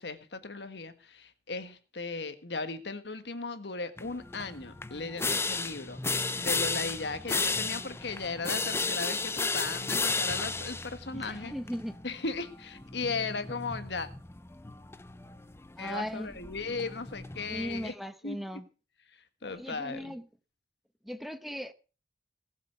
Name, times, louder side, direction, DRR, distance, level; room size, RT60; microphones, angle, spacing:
voice 1, 0.0-11.5 12.0-14.1 15.8-17.9 18.2-18.4 19.4-20.1, left 4 dB, 70° left, 1.6 m, -37 dB
sound 1, 4.0-17.9, left 3 dB, 15° left, 0.7 m, -34 dB
voice 2, 11.1-12.0 15.8-16.3 17.5-18.6 19.4-20.2 21.0-21.7, equal, ahead, 1.0 m, -38 dB
19.0 x 7.5 x 6.8 m
head